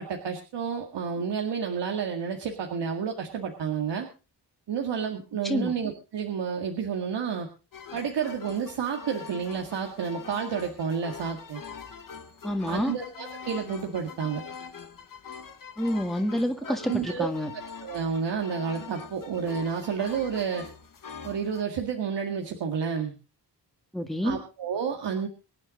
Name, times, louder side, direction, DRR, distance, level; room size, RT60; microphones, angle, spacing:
voice 1, 0.0-4.1 4.7-7.5 7.9-11.6 12.7-14.4 16.6-17.3 17.8-20.7 21.2-23.1 24.2-25.3, right 6 dB, 85° right, 2 dB, 2.1 m, -30 dB
voice 2, 5.4-5.8 12.4-12.9 15.8-17.5 23.9-24.4, equal, ahead, 4 dB, 1.9 m, -28 dB
sound 1, 7.7-21.6, left 6 dB, 55° left, 2.0 m, -43 dB
24.5 x 9.5 x 3.9 m, 0.33 s
wide cardioid pair, 125°, 41 cm